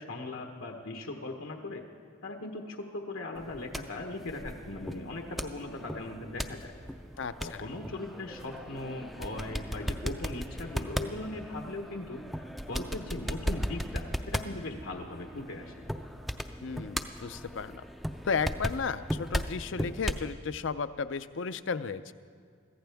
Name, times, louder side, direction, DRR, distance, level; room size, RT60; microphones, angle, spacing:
voice 1, 0.0-1.8 2.2-6.8 7.4-15.7, left 2 dB, 85° left, 2 dB, 1.2 m, -39 dB
sound 1, 3.3-20.3, equal, ahead, 0.4 m, -37 dB
voice 2, 16.6-17.8 18.2-22.1, left 5 dB, 65° left, 13 dB, 0.5 m, -33 dB
23.5 x 15.5 x 3.5 m, 2.1 s
head